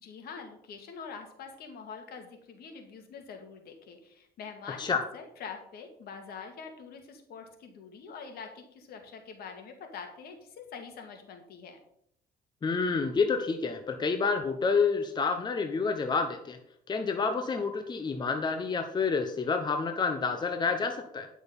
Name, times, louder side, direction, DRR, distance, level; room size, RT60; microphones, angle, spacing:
voice 1, 0.0-11.8, left 5 dB, 65° left, 4 dB, 2.2 m, -45 dB
voice 2, 12.6-16.6 16.9-21.3, left 4 dB, 25° left, 6 dB, 0.9 m, -29 dB
10.5 x 6.2 x 5.4 m, 0.71 s
cardioid pair, 110°, 17 cm